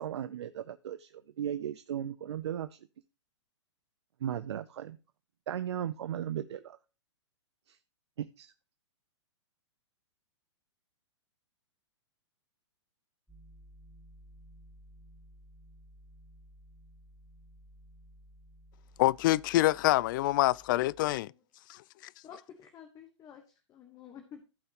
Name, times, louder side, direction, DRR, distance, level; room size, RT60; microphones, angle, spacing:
voice 1, 0.0-2.8 4.2-5.0 5.5-6.8 7.7-7.8 8.2-8.5, right 10 dB, 65° right, 0.6 m, -36 dB
sound 1, 13.3-21.2, equal, ahead, 3.0 m, -56 dB
voice 2, 19.0-21.3 21.7-21.8, left 16 dB, 45° left, 0.4 m, -26 dB
voice 3, 22.2-24.4, left 8 dB, 25° left, 1.3 m, -51 dB
16.0 x 5.6 x 3.0 m
hypercardioid pair, 115°, 15 cm